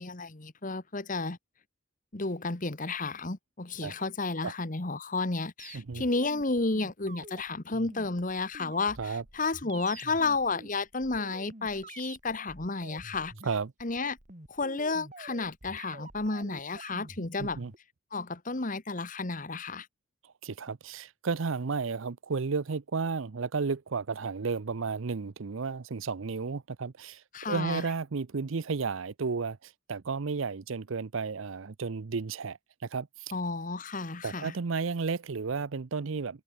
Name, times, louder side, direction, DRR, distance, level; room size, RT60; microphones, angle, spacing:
voice 1, 0.0-1.4 2.1-13.3 13.8-14.2 14.5-17.6 18.1-19.9 27.3-27.8 33.3-34.5, left 3 dB, 40° left, 1.4 m, -32 dB
sound 1, 5.6-17.8, right 2 dB, 35° right, 3.1 m, -48 dB
voice 2, 5.7-6.0 9.0-9.2 13.4-13.7 17.4-17.7 20.4-33.3 34.2-36.4, right 4 dB, 70° right, 0.6 m, -33 dB
head